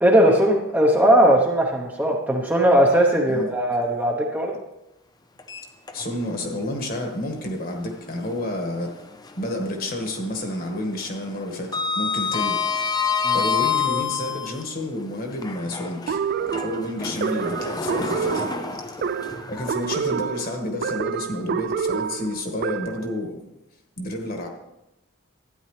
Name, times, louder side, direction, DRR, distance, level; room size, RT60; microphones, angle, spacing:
voice 1, 0.0-4.6 13.2-13.4, right 1 dB, 10° right, -1 dB, 0.9 m, -18 dB
Sliding door, 5.4-6.4 6.8-6.9 8.6-9.6 9.9-10.3 10.5-14.6 15.3-20.5, left 6 dB, 20° left, 0.5 m, -28 dB
voice 2, 5.9-8.9 9.4-12.6 13.3-16.2 16.6-18.5 19.5-23.4 24.0-24.5, left 1 dB, 40° left, 2 dB, 1.7 m, -30 dB
sound 1, 16.1-23.1, right 6 dB, 45° right, 0.3 m, -28 dB
12.5 x 9.8 x 3.3 m, 0.92 s
head